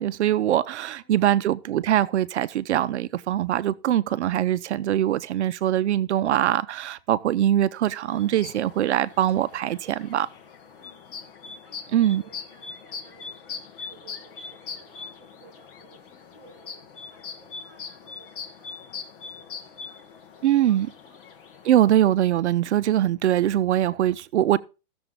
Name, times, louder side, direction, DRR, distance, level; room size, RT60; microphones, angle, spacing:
voice 1, 0.0-10.3 11.9-12.2 20.4-20.9 21.6-24.6, right 12 dB, 70° right, 0.6 m, -22 dB
voice 2, 0.7-1.7 10.7-21.2, right 3 dB, 25° right, 5.2 m, -57 dB
sound 1, 8.1-21.7, left 5 dB, 45° left, 1.3 m, -41 dB
15.5 x 7.0 x 3.8 m
hypercardioid pair, 175°, 35 cm